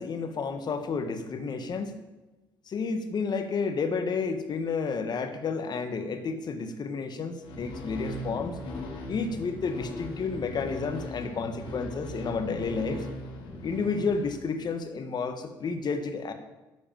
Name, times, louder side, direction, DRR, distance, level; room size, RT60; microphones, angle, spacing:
voice 1, 0.0-2.0 2.7-8.6 9.1-13.0 13.6-16.3, left 4 dB, 55° left, 8 dB, 1.7 m, -31 dB
sound 1, 7.4-14.8, left 1 dB, 70° left, 2.5 m, -39 dB
10.5 x 8.1 x 7.6 m, 1.1 s
hypercardioid pair, 55°, 9 cm